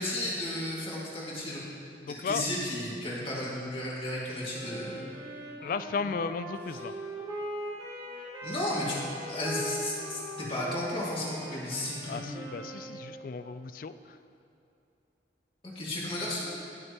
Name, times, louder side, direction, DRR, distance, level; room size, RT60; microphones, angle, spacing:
voice 1, 0.0-1.6 2.1-5.0 6.0-6.1 8.4-9.0 9.3-12.2 15.7-16.5, left 1 dB, 30° left, -6 dB, 2.2 m, -33 dB
voice 2, 2.0-2.4 5.6-6.9 12.1-14.2, left 5 dB, 50° left, 12 dB, 0.3 m, -35 dB
Wind instrument woodwind instrument, 4.5-13.3, right 1 dB, 25° right, 2.1 m, -40 dB
19.0 x 6.5 x 3.0 m, 2.8 s
head